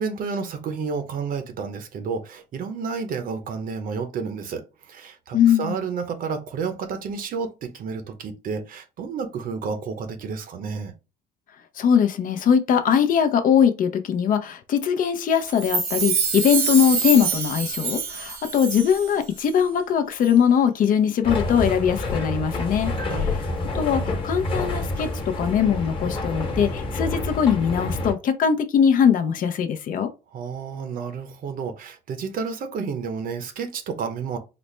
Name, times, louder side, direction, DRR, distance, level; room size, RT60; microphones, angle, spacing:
voice 1, 0.0-10.9 23.1-23.5 30.3-34.4, right 5 dB, 55° right, 0.8 m, -31 dB
voice 2, 5.3-5.8 11.8-22.9 23.7-30.1, left 8 dB, 55° left, 0.6 m, -21 dB
Chime, 15.5-19.1 19.4-19.5, right 5 dB, 85° right, 1.1 m, -26 dB
sound 1, 21.2-28.1, left 2 dB, 30° left, 1.2 m, -28 dB
4.1 x 2.1 x 3.2 m
cardioid pair, 110°, 17 cm